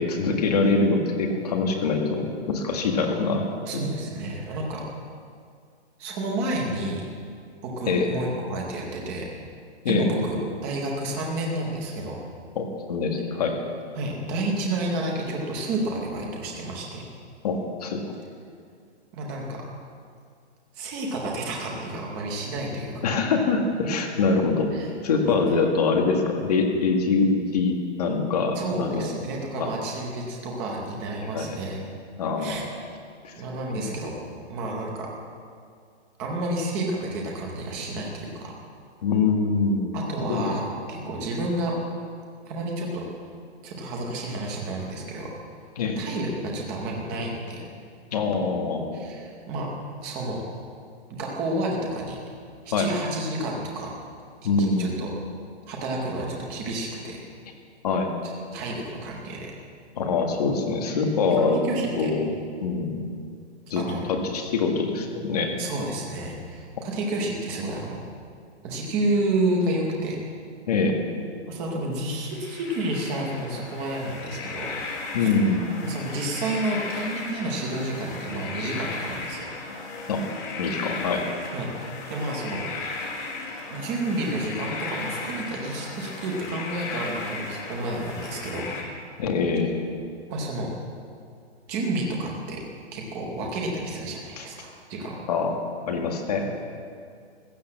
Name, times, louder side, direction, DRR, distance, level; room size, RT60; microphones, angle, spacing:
voice 1, 0.0-3.4 3.7-3.9 7.9-8.1 9.8-10.1 12.6-13.6 17.4-18.0 23.0-24.7 25.0-29.1 29.6-29.7 31.2-31.6 32.2-32.7 33.2-33.3 33.7-33.9 39.0-40.0 40.3-40.4 45.8-46.0 48.1-48.9 52.7-52.9 54.4-55.0 57.8-58.1 60.0-61.6 62.0-62.3 62.6-63.0 63.7-63.8 64.1-65.6 66.8-66.9 70.7-71.0 75.1-75.7 80.1-80.3 80.6-81.3 89.2-89.8 94.4-94.5 95.3-95.5 95.9-96.5, left 4 dB, 35° left, 3 dB, 1.8 m, -24 dB
voice 2, 3.6-4.8 6.0-7.0 7.6-9.3 9.9-10.4 10.6-12.2 14.0-17.1 19.1-19.6 20.7-22.9 24.7-24.9 25.2-25.4 28.6-31.8 32.4-32.6 33.4-34.1 34.5-35.1 36.2-38.5 39.9-41.7 42.5-43.0 43.6-45.3 46.0-47.6 48.9-49.7 50.0-50.4 51.1-52.2 52.6-53.9 54.6-55.1 55.7-57.2 58.2-59.5 60.9-61.0 61.4-62.1 63.7-64.0 65.6-68.0 68.6-70.2 71.5-74.7 75.2-75.3 75.8-79.5 81.5-82.6 83.7-88.7 90.3-90.7 91.7-92.6 92.9-95.3 96.4-96.5, right 2 dB, 5° right, -1 dB, 0.7 m, -30 dB
sound 1, 72.2-88.8, left 3 dB, 15° left, 1.2 m, -36 dB
16.0 x 11.5 x 7.5 m, 2.3 s
hypercardioid pair, 180°, 34 cm